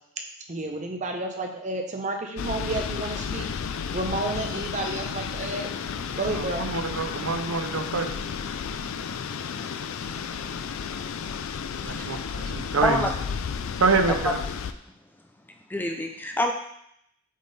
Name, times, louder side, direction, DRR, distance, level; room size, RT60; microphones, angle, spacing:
voice 1, 0.5-3.5 3.9-5.7 6.2-6.6, right 2 dB, 35° right, 3 dB, 0.7 m, -31 dB
sound 1, 2.4-14.7, left 6 dB, 75° left, 0.4 m, -32 dB
voice 2, 6.2-8.2 11.8-13.1 13.8-14.4, right 4 dB, 80° right, 7 dB, 0.6 m, -26 dB
voice 3, 15.7-16.5, left 1 dB, 10° left, 3 dB, 0.3 m, -26 dB
7.4 x 3.6 x 4.1 m, 0.75 s
head